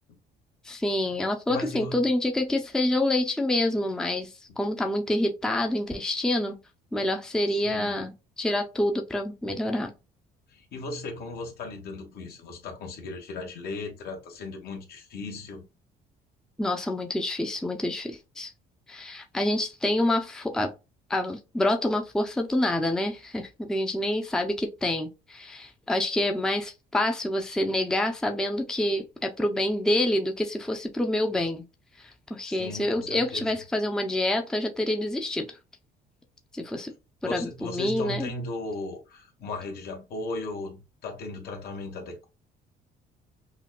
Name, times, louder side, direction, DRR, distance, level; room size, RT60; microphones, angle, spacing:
voice 1, 0.6-6.6 6.9-9.9 16.6-18.5 18.9-20.7 21.1-31.6 32.0-35.6 36.5-36.9 37.3-38.3, left 1 dB, 5° left, 0.5 m, -27 dB
voice 2, 1.5-2.0 4.5-4.6 7.6-8.0 10.5-15.7 32.4-33.5 37.2-42.3, left 2 dB, 70° left, 1.5 m, -37 dB
5.7 x 2.2 x 2.3 m
cardioid pair, 110°, 17 cm